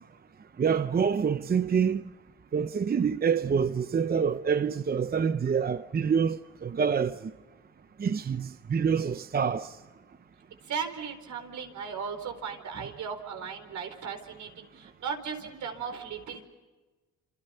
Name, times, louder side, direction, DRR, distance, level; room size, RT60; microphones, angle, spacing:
voice 1, 0.6-2.0 2.5-7.2 8.0-9.7, right 6 dB, 30° right, 0.7 m, -26 dB
voice 2, 10.7-16.5, right 6 dB, 70° right, 4.4 m, -37 dB
29.0 x 27.0 x 5.7 m
cardioid pair, 90°, 30 cm